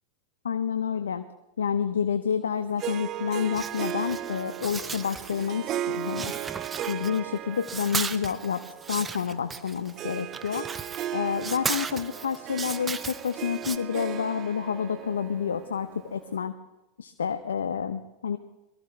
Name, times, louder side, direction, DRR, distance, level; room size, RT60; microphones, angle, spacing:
voice 1, 0.4-1.2 1.6-6.3 6.9-8.6 8.9-10.6 11.1-16.6 17.0-18.4, left 7 dB, 90° left, 9 dB, 0.7 m, -29 dB
Harp, 2.8-16.4, right 12 dB, 40° right, 0.5 m, -37 dB
sound 1, 3.5-5.7 6.0-7.3 7.6-13.8, right 5 dB, 20° right, 0.9 m, -36 dB
22.5 x 14.0 x 3.4 m, 1.0 s
hypercardioid pair, 100°, 0 cm